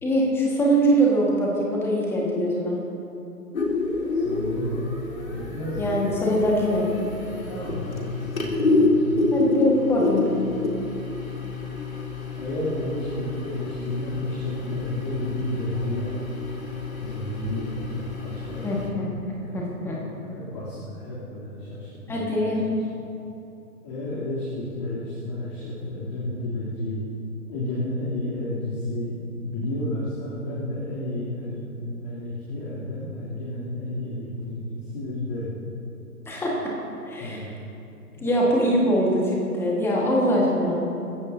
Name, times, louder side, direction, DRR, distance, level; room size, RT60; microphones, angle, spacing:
voice 1, 0.0-2.8 5.8-6.8 9.3-10.4 18.6-19.0 19.5-20.0 22.1-22.6 36.3-36.7 37.1-37.4 38.2-40.7, equal, 5° left, -3 dB, 1.6 m, -23 dB
sound 1, 3.5-18.9, left 3 dB, 60° left, 3.3 m, -28 dB
voice 2, 4.1-4.8 5.3-6.0 7.5-9.2 12.4-16.2 16.9-18.9 19.4-20.0 20.2-23.0 23.8-27.0 27.5-29.1 29.4-35.5 37.2-37.5 38.1-38.3, left 1 dB, 25° left, -8 dB, 3.1 m, -32 dB
26.0 x 15.0 x 2.8 m, 2.8 s
figure-of-eight pair, 140°, 46 cm